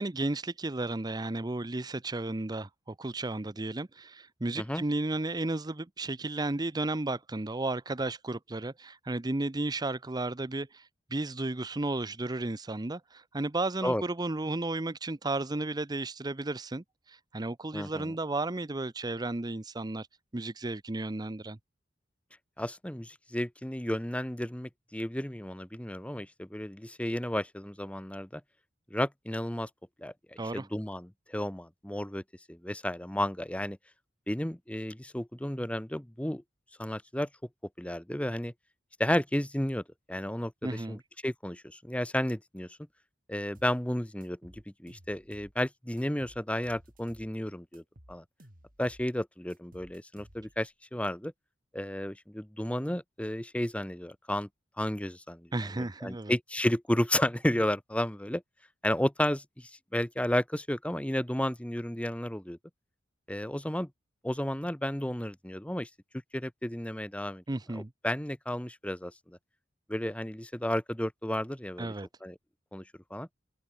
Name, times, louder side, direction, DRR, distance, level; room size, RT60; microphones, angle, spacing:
voice 1, 0.0-20.1 20.3-21.6 30.4-30.7 40.6-41.0 55.5-56.3 67.5-67.9 71.8-72.1, right 2 dB, 20° right, 0.7 m, -33 dB
voice 2, 17.7-18.1 22.6-28.4 28.9-29.7 30.0-32.2 32.5-33.8 34.3-36.4 36.8-37.3 37.8-38.5 39.0-39.8 40.1-42.7 43.3-47.8 48.1-48.2 48.8-51.3 51.7-54.5 54.8-58.4 58.8-62.6 63.3-63.9 64.2-65.9 66.3-67.4 67.7-69.4 69.9-71.9 72.2-72.4 72.7-72.8 73.1-73.3, left 1 dB, 5° left, 1.1 m, -32 dB
sound 1, 43.5-43.8 44.2-45.6 46.0-47.3 47.7-49.1 49.5-50.7, equal, 50° right, 7.9 m, -56 dB
head